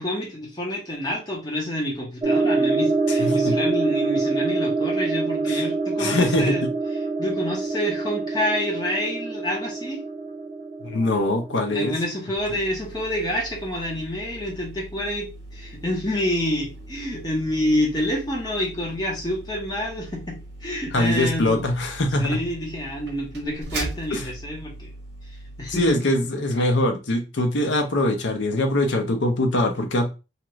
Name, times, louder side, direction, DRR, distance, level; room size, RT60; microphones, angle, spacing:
voice 1, 0.0-6.7 7.2-10.0 11.7-21.6 22.2-24.9 25.6-26.0, left 1 dB, 20° left, -2 dB, 0.9 m, -28 dB
sound 1, 2.2-11.7, right 3 dB, 25° right, 0.4 m, -25 dB
voice 2, 3.2-3.6 5.5-5.6 6.0-6.6 10.8-11.9 20.9-22.4 24.1-24.3 25.8-30.1, left 1 dB, 80° left, 4 dB, 0.7 m, -22 dB
sound 2, 12.4-25.9, right 2 dB, 65° right, 0.8 m, -40 dB
2.9 x 2.4 x 3.0 m, 0.30 s
head